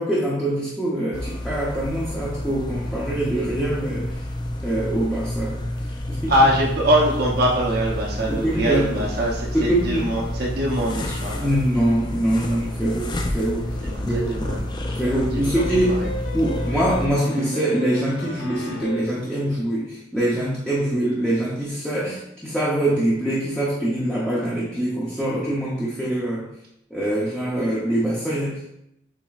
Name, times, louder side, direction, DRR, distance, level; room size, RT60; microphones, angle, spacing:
voice 1, 0.0-4.2 4.6-5.6 6.1-6.3 8.3-9.1 9.5-10.1 11.3-13.7 14.0-14.4 15.0-16.0 16.3-26.5 26.9-28.7, right 1 dB, 5° left, -8 dB, 0.7 m, -24 dB
sound 1, 1.1-17.1, left 1 dB, 25° left, 0.4 m, -29 dB
voice 2, 6.3-11.6 12.4-12.6 13.8-14.7 15.0-15.2 15.5-15.6 16.0-16.1, equal, 55° right, -3 dB, 0.8 m, -23 dB
sound 2, 15.6-19.2, right 1 dB, 75° left, 0.7 m, -33 dB
7.1 x 2.9 x 2.4 m, 0.79 s
head